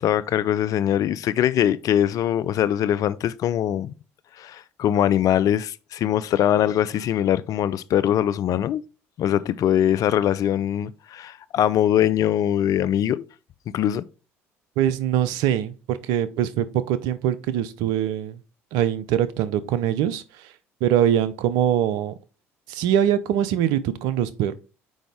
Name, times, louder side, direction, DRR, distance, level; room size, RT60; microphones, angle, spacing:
voice 1, 0.0-3.9 4.4-8.8 9.2-13.3 13.7-14.1, left 10 dB, 55° left, 0.5 m, -22 dB
voice 2, 14.8-18.4 18.7-20.5 20.8-22.2 22.7-24.5, right 10 dB, 70° right, 0.7 m, -23 dB
6.3 x 5.0 x 3.5 m
hypercardioid pair, 60°, 7 cm